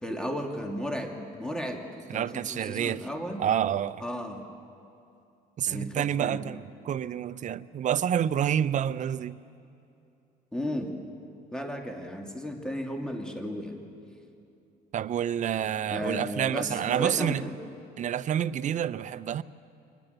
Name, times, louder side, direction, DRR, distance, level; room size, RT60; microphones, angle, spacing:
voice 1, 0.0-3.4 4.0-4.4 5.6-6.4 10.5-10.9 11.5-13.8 15.9-17.5, equal, 5° left, 3 dB, 2.6 m, -34 dB
voice 2, 2.1-3.1 3.4-4.0 5.6-9.4 14.9-17.4 18.0-19.4, right 9 dB, 45° right, 15 dB, 0.7 m, -28 dB
24.0 x 20.0 x 8.1 m, 2.7 s
cardioid pair, 110°, 17 cm